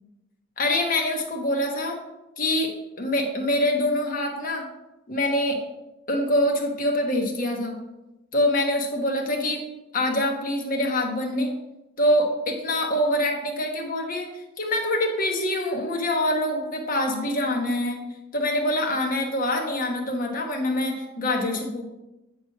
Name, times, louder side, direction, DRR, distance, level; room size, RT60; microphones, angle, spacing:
voice 1, 0.6-2.0 2.4-4.7 5.1-5.6 6.1-7.7 8.3-9.6 9.9-11.5 12.0-18.0 18.3-21.8, left 1 dB, 50° left, 2 dB, 1.2 m, -25 dB
8.5 x 3.1 x 5.9 m, 0.98 s
head